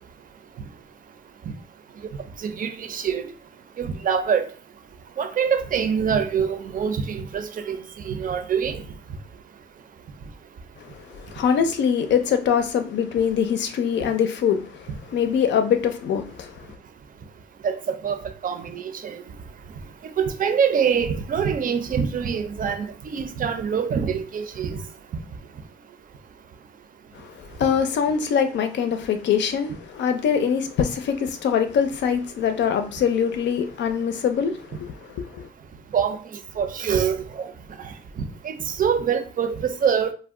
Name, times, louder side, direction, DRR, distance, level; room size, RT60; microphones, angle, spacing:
voice 1, 2.4-3.3 3.8-4.4 5.2-8.8 17.6-19.2 20.0-24.8 35.9-36.2 36.6-37.5 37.8-37.9 38.4-40.1, right 7 dB, 45° right, 0.5 m, -25 dB
voice 2, 10.8-16.7 27.1-35.5, left 7 dB, 65° left, 0.5 m, -23 dB
2.4 x 2.2 x 3.6 m
cardioid pair, 90°, 20 cm